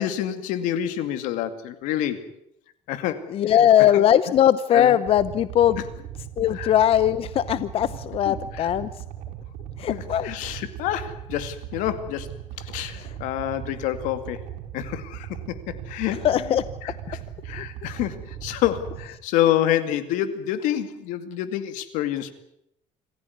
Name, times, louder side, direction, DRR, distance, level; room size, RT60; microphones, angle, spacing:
voice 1, 0.0-2.3 2.9-4.0 4.7-5.0 6.5-6.7 8.2-8.7 9.9-12.3 12.6-14.4 14.7-17.2 17.4-22.3, left 12 dB, 85° left, 11 dB, 2.3 m, -28 dB
voice 2, 3.3-5.8 6.4-8.9 9.8-10.3 16.2-16.6, left 10 dB, 50° left, 15 dB, 0.8 m, -20 dB
sound 1, 5.1-19.1, right 11 dB, 80° right, 5.6 m, -38 dB
27.0 x 15.0 x 9.7 m, 0.79 s
cardioid pair, 135°, 13 cm